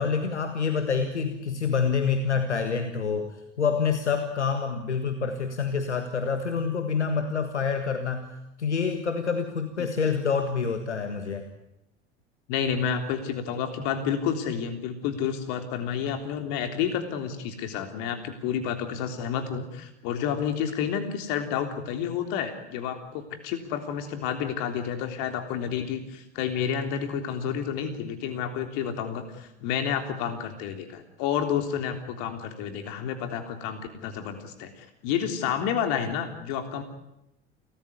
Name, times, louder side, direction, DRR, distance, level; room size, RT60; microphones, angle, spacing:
voice 1, 0.0-8.3 8.6-11.4, left 5 dB, 80° left, 8 dB, 1.7 m, -27 dB
voice 2, 12.5-36.8, left 8 dB, 55° left, 7 dB, 3.5 m, -30 dB
29.5 x 14.0 x 9.8 m, 0.88 s
figure-of-eight pair, 70°, 34 cm